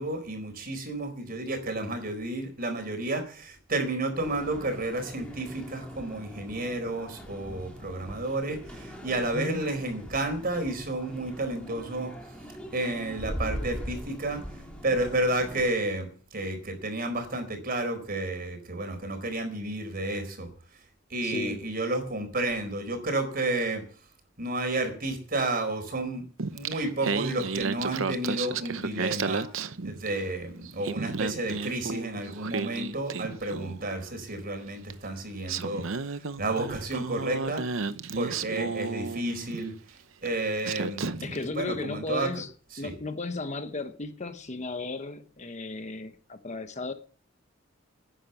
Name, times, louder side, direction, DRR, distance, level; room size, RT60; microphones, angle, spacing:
voice 1, 0.0-12.1 12.7-14.4 14.8-20.5 21.1-23.8 24.4-26.3 26.5-29.5 29.8-37.7 38.1-39.7 40.2-42.4 42.8-42.9, right 2 dB, 50° right, 4.3 m, -31 dB
sound 1, 4.2-15.7, equal, 5° left, 3.3 m, -41 dB
voice 2, 9.2-9.6 21.2-21.6 41.2-42.5 42.8-46.9, left 3 dB, 35° left, 1.2 m, -35 dB
Singing, 26.4-30.3 30.7-33.9 34.9-35.0 35.5-39.7 40.3-40.4 40.6-41.4, right 4 dB, 80° right, 0.8 m, -33 dB
11.0 x 10.0 x 8.0 m
head